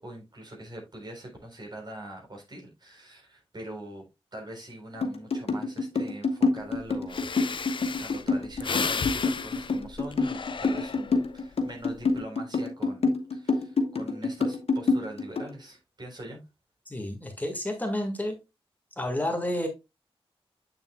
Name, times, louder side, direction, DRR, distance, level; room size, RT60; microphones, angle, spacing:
voice 1, 0.0-4.0 4.3-7.3 8.0-16.4, right 1 dB, 45° right, 3.7 m, -43 dB
sound 1, 5.0-15.5, left 3 dB, 85° left, 1.3 m, -26 dB
Breathing, 6.8-6.9 7.1-11.3 11.8-12.2, left 5 dB, 55° left, 0.6 m, -34 dB
voice 2, 16.9-18.4 19.0-19.7, left 1 dB, 15° left, 1.7 m, -30 dB
7.9 x 7.0 x 2.2 m
wide cardioid pair, 85°, 10 cm